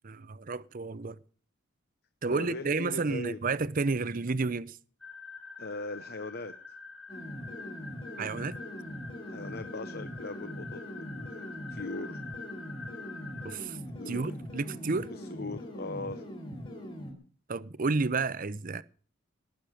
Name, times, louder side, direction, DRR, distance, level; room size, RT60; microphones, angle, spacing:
voice 1, 0.0-1.2 2.2-4.8 8.2-8.6 13.4-13.8 14.1-15.1 17.5-18.8, right 4 dB, 40° right, 0.6 m, -31 dB
voice 2, 2.3-3.6 5.6-6.8 9.2-12.2 13.9-14.3 15.1-16.2, left 2 dB, 50° left, 0.8 m, -40 dB
sound 1, 5.0-13.6, left 4 dB, ahead, 1.7 m, -46 dB
sound 2, 7.1-17.1, equal, 25° left, 3.6 m, -42 dB
18.5 x 6.7 x 9.1 m
head